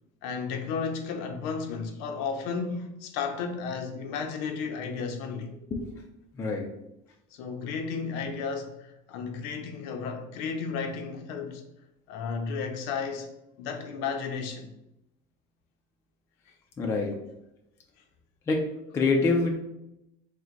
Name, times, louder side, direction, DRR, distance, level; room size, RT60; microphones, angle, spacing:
voice 1, 0.2-5.5 7.3-11.6 12.1-13.3 13.6-14.7, left 5 dB, 60° left, 0.6 m, -33 dB
voice 2, 6.4-6.7 16.8-17.1 18.5-18.6 18.9-19.5, left 3 dB, 15° left, 0.4 m, -25 dB
3.7 x 2.1 x 4.4 m
cardioid pair, 170°, 20 cm